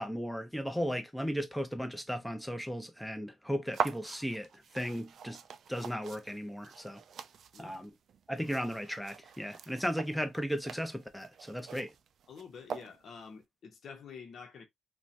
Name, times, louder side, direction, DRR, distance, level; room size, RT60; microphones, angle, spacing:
voice 1, 0.0-5.4 5.7-7.0 7.6-7.9 8.3-11.9, equal, ahead, 0.6 m, -36 dB
sound 1, 3.7-13.3, right 7 dB, 60° right, 0.3 m, -43 dB
voice 2, 12.3-14.7, left 6 dB, 55° left, 0.8 m, -48 dB
2.8 x 2.2 x 2.5 m
cardioid pair, 90°, 0 cm